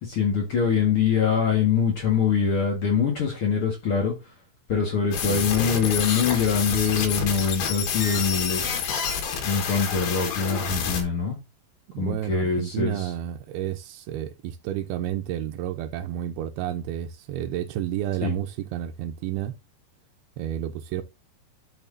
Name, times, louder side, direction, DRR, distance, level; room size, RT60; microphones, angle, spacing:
voice 1, 0.0-4.1 4.7-8.7 9.4-11.4 12.0-13.0 18.2-18.3, left 6 dB, 50° left, 1.8 m, -24 dB
sound 1, 5.1-11.0, left 7 dB, 85° left, 3.7 m, -28 dB
voice 2, 11.9-19.5 20.4-21.0, right 11 dB, 85° right, 2.6 m, -31 dB
11.0 x 6.2 x 2.7 m
omnidirectional pair, 4.5 m